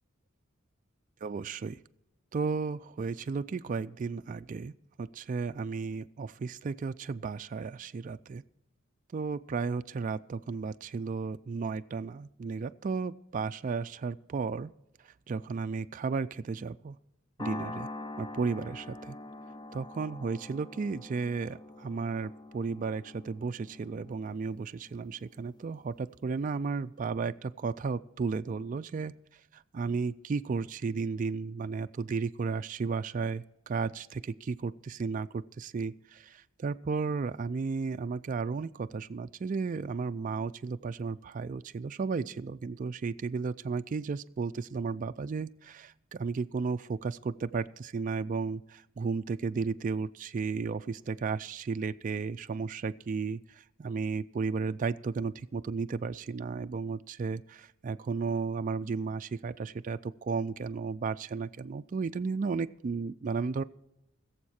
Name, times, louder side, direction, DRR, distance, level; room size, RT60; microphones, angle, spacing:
voice 1, 1.2-1.8 2.3-8.4 9.1-14.7 15.0-17.0 17.4-17.9 18.2-19.2 19.7-29.1 29.5-36.2 36.6-63.6, right 4 dB, 40° right, 10 dB, 0.3 m, -34 dB
sound 1, 17.4-25.9, left 2 dB, 20° left, 0.5 m, -45 dB
20.5 x 7.2 x 4.3 m, 0.88 s
head